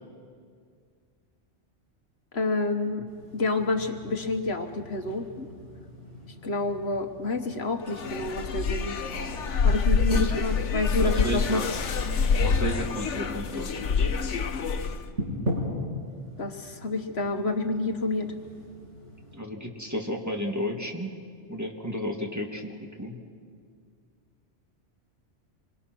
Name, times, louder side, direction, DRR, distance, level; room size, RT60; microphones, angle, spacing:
voice 1, 2.3-3.0 3.3-5.5 6.3-9.0 9.6-11.6 16.4-18.3, left 2 dB, 65° left, 6 dB, 1.5 m, -29 dB
sound 1, 3.1-19.4, equal, 90° right, 6.4 m, -40 dB
sound 2, 7.9-15.1, left 5 dB, 85° left, 1.3 m, -26 dB
voice 2, 10.1-10.4 11.0-11.6 12.4-13.8 19.3-21.1 21.5-23.2, equal, 15° right, 1 dB, 1.9 m, -32 dB
26.5 x 22.5 x 6.1 m, 2.1 s
omnidirectional pair, 1.2 m